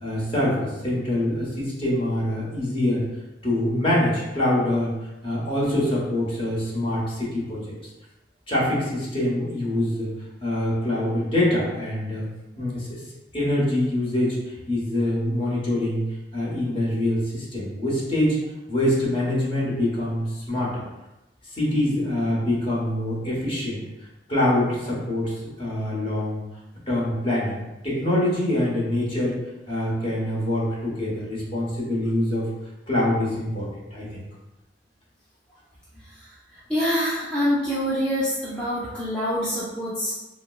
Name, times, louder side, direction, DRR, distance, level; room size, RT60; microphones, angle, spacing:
voice 1, 0.0-3.0 3.4-4.9 5.2-7.7 8.5-12.3 12.6-13.0 13.3-14.4 14.7-16.0 16.3-18.4 18.7-20.8 21.5-23.8 24.3-26.4 26.9-29.4 29.7-32.5 32.9-34.2, left 1 dB, 30° left, -6 dB, 1.1 m, -25 dB
voice 2, 36.7-40.1, equal, 5° left, -10 dB, 0.5 m, -25 dB
5.1 x 2.0 x 2.4 m, 1.0 s
head